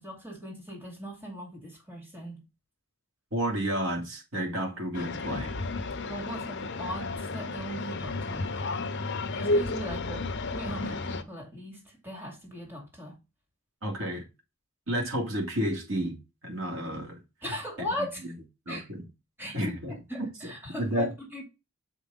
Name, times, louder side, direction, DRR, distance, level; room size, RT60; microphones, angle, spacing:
voice 1, 0.0-2.5 6.0-8.9 9.3-13.2 17.4-18.2 18.7-18.8 19.4-21.4, equal, 10° right, 2.6 m, -39 dB
voice 2, 3.3-5.5 13.8-14.3 14.9-17.2 17.8-17.9 18.2-18.3 18.7-19.1 19.5-20.5 20.8-21.1, right 1 dB, 70° right, 2.9 m, -31 dB
sound 1, 4.9-11.2, left 2 dB, 55° left, 0.9 m, -32 dB
7.0 x 5.0 x 3.9 m
head